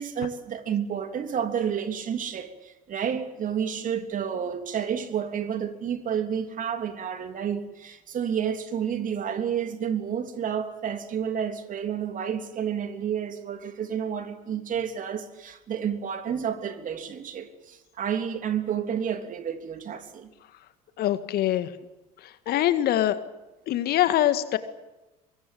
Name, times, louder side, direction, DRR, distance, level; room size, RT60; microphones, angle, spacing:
voice 1, 0.0-20.3, right 8 dB, 45° right, 3.2 m, -30 dB
voice 2, 21.0-21.7 22.2-23.2 23.7-24.6, left 13 dB, 55° left, 1.9 m, -24 dB
24.0 x 23.0 x 8.7 m
figure-of-eight pair, 60°, 19 cm